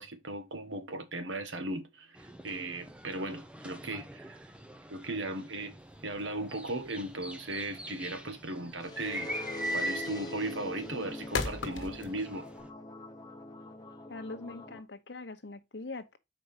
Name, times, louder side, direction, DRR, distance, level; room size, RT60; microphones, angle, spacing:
voice 1, 0.0-4.5 4.9-5.7 6.0-9.3 9.7-12.5, right 2 dB, 75° right, 1.2 m, -37 dB
sound 1, 2.2-12.7, right 1 dB, 5° right, 0.6 m, -42 dB
sound 2, 5.8-12.6, left 3 dB, 90° left, 1.3 m, -39 dB
sound 3, 8.8-14.8, left 1 dB, 20° left, 0.8 m, -44 dB
voice 2, 14.1-16.2, left 3 dB, 60° left, 0.9 m, -42 dB
5.0 x 4.7 x 5.5 m
head